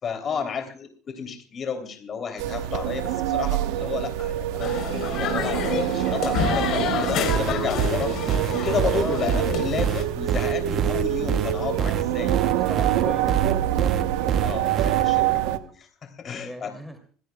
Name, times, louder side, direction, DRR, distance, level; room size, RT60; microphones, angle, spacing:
voice 1, 0.0-4.9 5.2-8.1 8.4-12.3 13.2-13.3 14.4-16.7, left 6 dB, 35° left, 5 dB, 3.2 m, -32 dB
sound 1, 2.4-15.6, right 12 dB, 85° right, 1.1 m, -26 dB
sound 2, 4.6-10.0, left 7 dB, 55° left, 4.0 m, -29 dB
sound 3, 7.3-15.0, right 8 dB, 40° right, 0.8 m, -26 dB
voice 2, 12.2-13.3 16.3-17.0, equal, ahead, 5 dB, 2.7 m, -38 dB
26.5 x 16.5 x 2.3 m, 0.41 s
cardioid pair, 135°, 0 cm